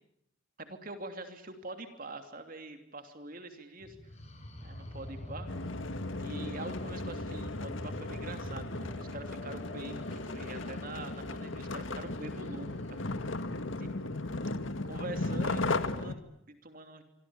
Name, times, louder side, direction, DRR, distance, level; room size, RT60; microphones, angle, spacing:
voice 1, 0.6-4.0 4.6-5.5 6.2-13.1 13.8-14.2 14.8-17.0, right 2 dB, 45° right, 7 dB, 3.0 m, -44 dB
sound 1, 3.8-13.6, left 1 dB, 35° left, 4.9 m, -45 dB
sound 2, 5.5-16.2, left 2 dB, 80° left, 1.8 m, -36 dB
26.5 x 25.5 x 8.7 m, 0.76 s
head